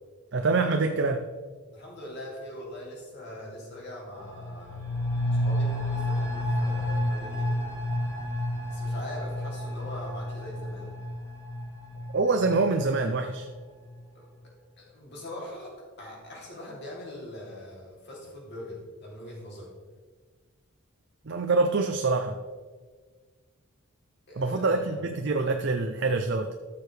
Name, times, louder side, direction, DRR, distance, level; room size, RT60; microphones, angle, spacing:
voice 1, 0.3-1.3 12.1-13.5 21.3-22.4 24.4-26.5, right 3 dB, 50° right, 6 dB, 0.5 m, -25 dB
voice 2, 1.7-4.9 5.3-7.7 8.7-11.0 14.1-14.5 14.8-19.7 24.3-25.1 25.4-25.5, left 1 dB, 50° left, -3 dB, 3.0 m, -42 dB
sound 1, 4.1-13.5 13.9-14.0, left 1 dB, 15° left, 3.1 m, -31 dB
13.5 x 6.8 x 3.4 m, 1.5 s
head